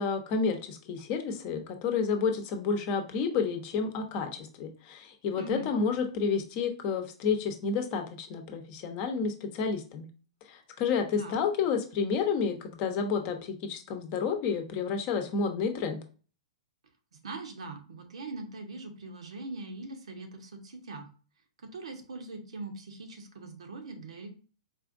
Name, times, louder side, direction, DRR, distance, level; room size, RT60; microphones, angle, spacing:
voice 1, 0.0-10.1 10.5-16.0, left 5 dB, 40° left, 6 dB, 0.7 m, -30 dB
voice 2, 5.3-5.7 11.2-11.4 17.1-21.1 21.7-24.3, right 3 dB, 75° right, 5 dB, 0.8 m, -41 dB
4.2 x 2.5 x 2.5 m, 0.37 s
hypercardioid pair, 115°, 3 cm